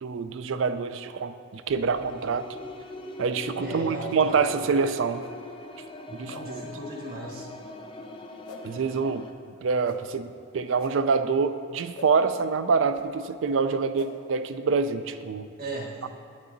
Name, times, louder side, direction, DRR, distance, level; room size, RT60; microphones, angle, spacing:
voice 1, 0.0-2.4 3.2-5.2 6.1-6.6 8.6-9.2 9.6-15.5 16.0-16.1, right 5 dB, 60° right, 11 dB, 0.4 m, -26 dB
sound 1, 1.7-9.3, left 2 dB, 25° left, 0.4 m, -41 dB
voice 2, 3.6-4.5 6.1-7.5 15.6-16.0, right 2 dB, 45° right, 0 dB, 1.2 m, -37 dB
sound 2, 4.1-4.2 5.2-5.3 6.3-6.4 7.3-7.4 8.4-8.6 9.8-10.0 10.8-10.9 11.9-12.1 12.9-13.1 13.9-14.1, left 3 dB, 80° left, 0.8 m, -43 dB
9.0 x 6.7 x 3.9 m, 2.6 s
head